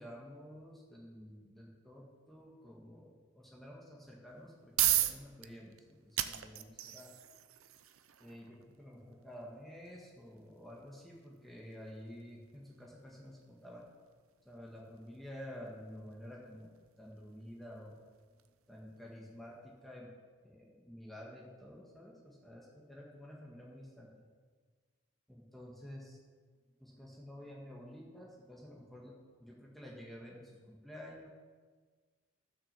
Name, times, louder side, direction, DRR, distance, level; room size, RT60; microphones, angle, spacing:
voice 1, 0.0-7.1 8.2-13.8 14.5-16.7 17.0-18.0 18.7-20.1 20.4-24.1 25.3-26.2 26.8-31.3, equal, ahead, -3 dB, 1.7 m, -51 dB
sound 1, 4.3-19.2, right 13 dB, 75° right, 0.6 m, -40 dB
13.5 x 6.3 x 7.5 m, 1.5 s
head